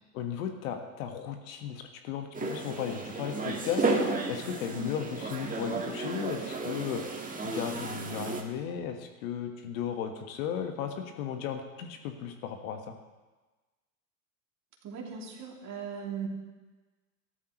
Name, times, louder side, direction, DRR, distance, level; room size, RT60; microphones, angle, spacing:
voice 1, 0.1-3.9 4.3-7.0 7.4-12.9, left 8 dB, 70° left, 5 dB, 1.6 m, -35 dB
sound 1, 2.3-8.4, right 3 dB, 20° right, 1.6 m, -33 dB
voice 2, 14.8-16.3, right 5 dB, 40° right, 0 dB, 2.7 m, -38 dB
14.0 x 12.5 x 3.1 m, 1.2 s
hypercardioid pair, 90°, 43 cm